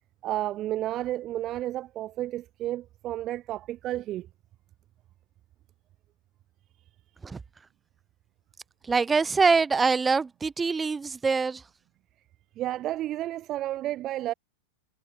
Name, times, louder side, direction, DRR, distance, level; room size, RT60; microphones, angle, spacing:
voice 1, 0.2-4.3 12.6-14.3, right 14 dB, 35° right, 0.3 m, -31 dB
voice 2, 8.8-11.6, right 4 dB, 15° right, 1.2 m, -24 dB
figure-of-eight pair, 90°, 0 cm